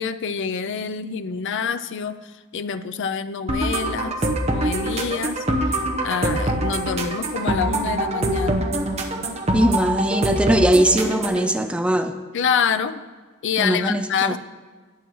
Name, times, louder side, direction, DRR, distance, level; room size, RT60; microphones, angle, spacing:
voice 1, 0.0-4.2 4.5-5.4 6.0-8.7 12.3-13.0 13.4-14.4, left 6 dB, 55° left, 11 dB, 0.5 m, -26 dB
sound 1, 3.5-11.5, right 1 dB, 30° right, 1.0 m, -24 dB
voice 2, 9.5-12.2 13.6-14.4, right 1 dB, 5° right, 8 dB, 0.3 m, -20 dB
18.5 x 7.9 x 3.1 m, 1.5 s
head